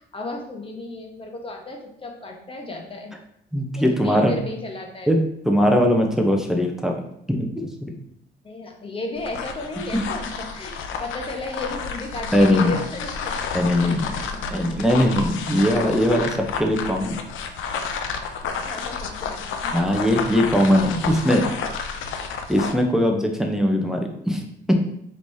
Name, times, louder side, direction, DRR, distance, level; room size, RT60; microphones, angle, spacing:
voice 1, 0.0-3.1 3.8-5.1 8.4-10.7 11.0-14.2 18.7-19.7 20.9-21.0, left 2 dB, 25° left, 1 dB, 1.0 m, -34 dB
voice 2, 3.5-4.4 5.1-5.2 5.5-6.9 7.3-7.9 12.3-12.7 13.5-14.1 14.5-17.2 19.7-21.4 22.5-24.7, equal, ahead, 2 dB, 0.7 m, -20 dB
sound 1, 9.2-22.8, left 5 dB, 80° left, 0.5 m, -31 dB
5.1 x 3.2 x 2.7 m, 0.75 s
cardioid pair, 90°, 20 cm